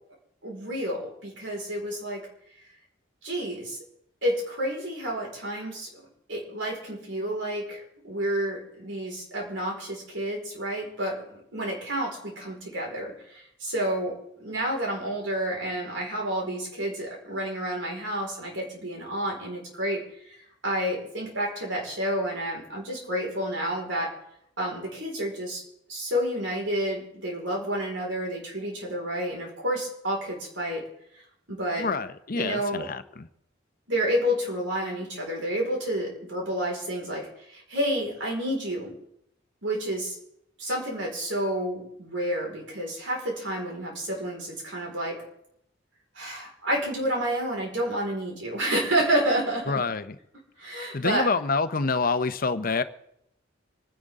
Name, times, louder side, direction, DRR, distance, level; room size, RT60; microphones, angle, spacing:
voice 1, 0.4-2.2 3.2-3.8 4.2-6.0 6.3-20.0 20.6-24.1 24.6-25.6 25.9-30.8 31.5-31.9 32.3-32.9 33.9-38.9 39.6-40.2 40.6-45.2 46.1-49.8 50.6-51.3, right 1 dB, 80° right, -1 dB, 4.9 m, -30 dB
voice 2, 31.8-33.3 49.7-50.1 50.9-52.8, left 4 dB, 50° left, 11 dB, 0.8 m, -27 dB
26.0 x 10.5 x 3.7 m, 0.76 s
head